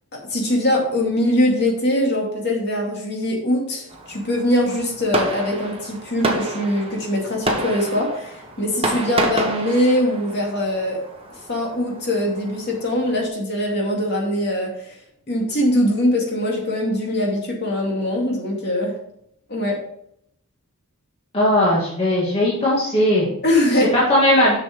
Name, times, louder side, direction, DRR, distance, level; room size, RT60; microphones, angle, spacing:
voice 1, 0.3-11.0 11.5-15.0 15.3-18.9 19.5-19.8 23.4-23.9, left 1 dB, 50° left, -1 dB, 2.4 m, -22 dB
Fireworks, 3.9-13.3, right 2 dB, 25° right, 1.2 m, -29 dB
voice 2, 21.3-23.3 23.7-24.5, left 1 dB, 25° left, -6 dB, 2.0 m, -18 dB
7.3 x 6.3 x 4.6 m, 0.72 s
head